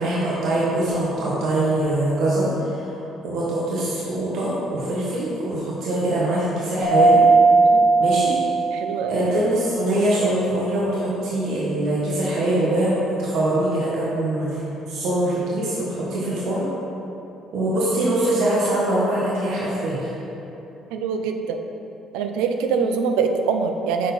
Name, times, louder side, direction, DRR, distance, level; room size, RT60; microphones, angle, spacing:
voice 1, 0.0-2.9 3.2-7.2 8.0-8.4 9.1-14.6 14.9-16.7 17.5-20.2, right 1 dB, 70° right, -6 dB, 1.3 m, -23 dB
Mallet percussion, 6.8-9.3, right 3 dB, 30° right, 1.5 m, -17 dB
voice 2, 8.7-9.3 20.9-21.6 22.1-24.1, right 5 dB, 90° right, 6 dB, 0.5 m, -24 dB
6.3 x 4.4 x 5.5 m, 2.9 s
cardioid pair, 85°, 0 cm